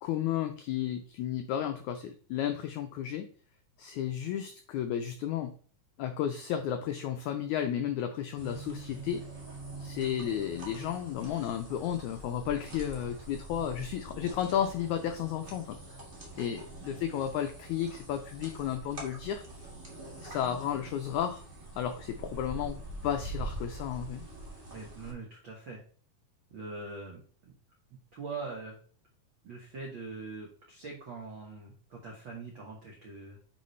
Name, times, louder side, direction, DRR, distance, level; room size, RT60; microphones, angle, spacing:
voice 1, 0.0-3.3 3.8-5.5 6.0-9.2 9.8-16.0 16.4-19.4 20.2-21.5 21.8-24.3, left 10 dB, 85° left, 7 dB, 1.7 m, -33 dB
sound 1, 8.4-25.1, right 2 dB, 65° right, 0.5 m, -44 dB
voice 2, 24.7-25.8 26.5-27.2 28.1-28.8 29.4-33.4, right 3 dB, 80° right, -1 dB, 1.0 m, -42 dB
9.4 x 3.8 x 3.1 m, 0.43 s
omnidirectional pair, 4.0 m